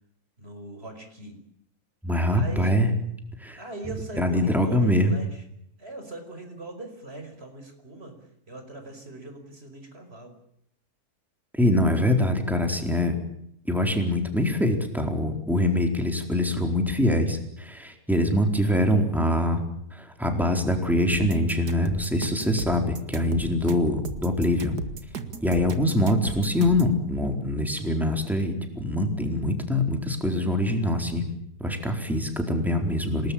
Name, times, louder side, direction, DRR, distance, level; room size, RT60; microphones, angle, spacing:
voice 1, 0.4-1.4 2.3-2.8 3.6-5.4 5.8-8.2 8.5-10.3 23.7-23.8, right 2 dB, 40° right, 7 dB, 5.4 m, -40 dB
voice 2, 2.0-2.9 3.4-3.6 4.2-5.2 11.5-13.1 13.7-19.6 19.9-24.8 25.4-31.2 31.6-33.3, left 1 dB, ahead, 4 dB, 4.2 m, -24 dB
sound 1, 21.1-27.0, right 3 dB, 90° right, 2.4 m, -35 dB
27.0 x 20.0 x 8.8 m, 0.75 s
omnidirectional pair, 1.6 m